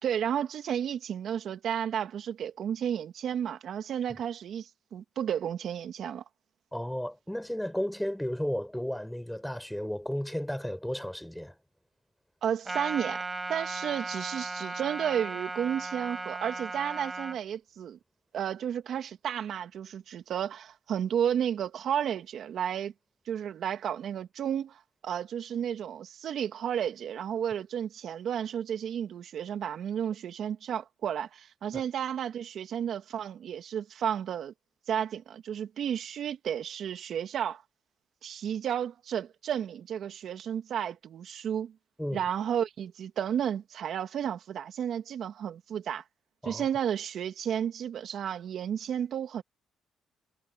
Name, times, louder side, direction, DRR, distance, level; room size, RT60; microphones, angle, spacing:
voice 1, 0.0-6.2 12.4-13.2 13.5-18.0 18.3-22.9 23.3-34.5 34.9-37.6 38.2-41.7 42.1-46.0 46.4-49.4, right 9 dB, 65° right, 2.6 m, -32 dB
voice 2, 6.7-11.6 42.0-42.2 46.4-46.7, equal, 5° left, 7.6 m, -33 dB
Trumpet, 12.7-17.4, right 3 dB, 20° right, 7.8 m, -36 dB
cardioid pair, 90°, 0 cm